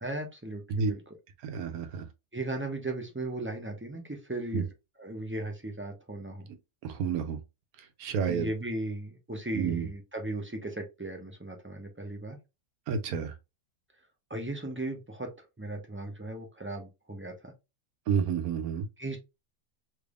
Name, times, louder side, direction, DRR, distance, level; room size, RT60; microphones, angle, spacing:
voice 1, 0.0-1.1 2.3-4.7 5.0-6.5 8.3-12.4 14.3-15.3 15.6-17.5 19.0-19.2, right 2 dB, 20° right, 0.3 m, -36 dB
voice 2, 1.4-2.1 4.5-4.6 6.8-7.4 8.0-8.5 9.5-9.9 12.9-13.3 18.1-18.9, right 6 dB, 90° right, 1.2 m, -30 dB
3.4 x 3.3 x 2.4 m
omnidirectional pair, 1.5 m